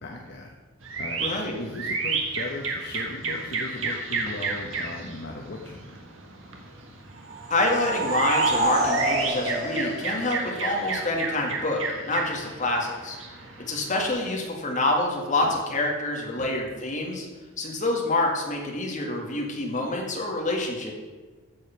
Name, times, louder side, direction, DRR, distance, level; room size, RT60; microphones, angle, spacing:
voice 1, 0.0-0.5 1.0-1.2 1.6-6.0 15.4-15.5 16.4-16.5, left 2 dB, 55° left, 0 dB, 1.0 m, -37 dB
sound 1, 0.8-14.1, right 4 dB, 80° right, 1.7 m, -32 dB
voice 2, 1.2-1.5 7.5-13.2 13.7-17.3 17.6-20.9, left 2 dB, 40° left, 0 dB, 2.0 m, -27 dB
sound 2, 7.2-10.8, right 2 dB, 50° right, 3.7 m, -27 dB
14.5 x 5.1 x 5.8 m, 1.3 s
head